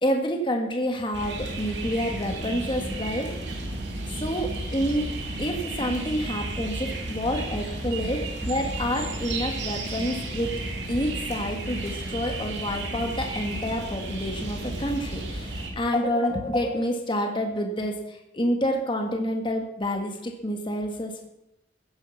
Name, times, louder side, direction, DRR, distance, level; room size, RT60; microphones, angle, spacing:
voice 1, 0.0-3.4 4.2-5.1 5.4-10.5 10.9-21.2, equal, 30° left, 3 dB, 1.8 m, -28 dB
sound 1, 1.1-15.7, right 2 dB, 85° right, 3.0 m, -33 dB
15.5 x 10.5 x 5.9 m, 0.85 s
head